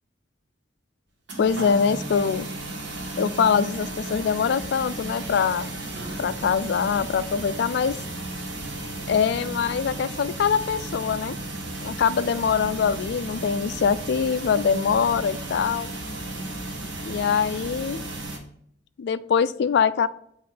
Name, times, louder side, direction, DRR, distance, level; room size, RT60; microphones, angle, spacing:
sound 1, 1.3-18.4, right 2 dB, 65° right, 1.2 m, -34 dB
voice 1, 1.4-2.5 3.2-5.7 6.2-7.9 9.1-11.4 11.8-15.9 17.1-18.0 19.0-20.1, left 6 dB, 60° left, 15 dB, 0.3 m, -23 dB
7.6 x 3.1 x 4.2 m, 0.70 s
head